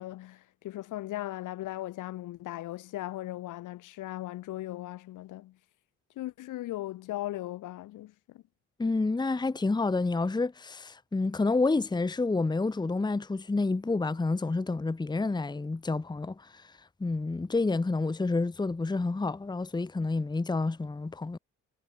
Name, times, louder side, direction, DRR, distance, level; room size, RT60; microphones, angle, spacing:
voice 1, 0.0-5.6 6.1-8.4, left 15 dB, 90° left, 5.0 m, -38 dB
voice 2, 8.8-16.7 17.0-21.4, left 3 dB, 15° left, 1.0 m, -29 dB
cardioid pair, 90°, 30 cm